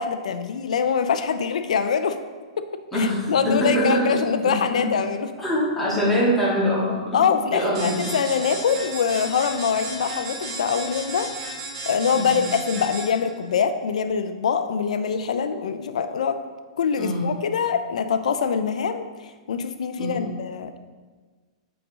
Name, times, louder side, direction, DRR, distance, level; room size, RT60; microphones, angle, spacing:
voice 1, 0.0-2.2 2.6-5.3 7.1-11.3 11.9-16.4 16.8-19.0 19.5-20.8, left 6 dB, 85° left, 9 dB, 0.5 m, -24 dB
voice 2, 2.9-4.0 4.7-4.8 5.4-6.9 7.5-8.1 12.2-12.4 17.0-17.3 20.0-20.2, equal, 5° left, -9 dB, 2.3 m, -23 dB
sound 1, 7.7-13.3, right 3 dB, 50° right, 2.0 m, -34 dB
7.7 x 5.1 x 3.6 m, 1.4 s
hypercardioid pair, 150°, 4 cm